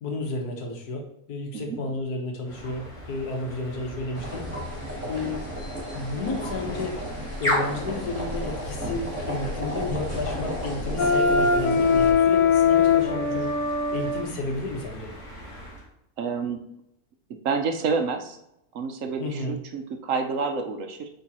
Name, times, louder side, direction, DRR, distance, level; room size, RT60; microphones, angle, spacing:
voice 1, 0.0-4.5 5.1-5.4 5.9-7.0 7.4-13.5 13.9-15.1 19.2-19.6, left 2 dB, 85° left, 2 dB, 1.7 m, -32 dB
sound 1, 2.4-15.9, left 1 dB, 20° left, 2.4 m, -36 dB
sound 2, 4.1-12.1, equal, 10° right, 2.3 m, -33 dB
Wind instrument woodwind instrument, 11.0-14.2, left 5 dB, 60° left, 1.1 m, -21 dB
voice 2, 16.2-16.6 17.4-18.4 18.7-21.1, right 5 dB, 65° right, 5 dB, 1.0 m, -28 dB
8.6 x 3.8 x 2.9 m, 0.81 s
omnidirectional pair, 1.6 m